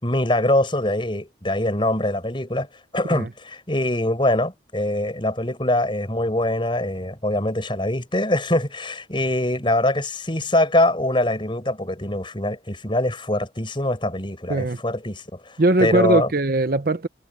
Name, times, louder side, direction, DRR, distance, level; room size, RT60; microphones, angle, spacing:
voice 1, 0.0-2.7 2.9-16.3, left 1 dB, 30° left, 6.7 m, -23 dB
voice 2, 15.6-17.1, right 2 dB, 55° right, 0.8 m, -20 dB
head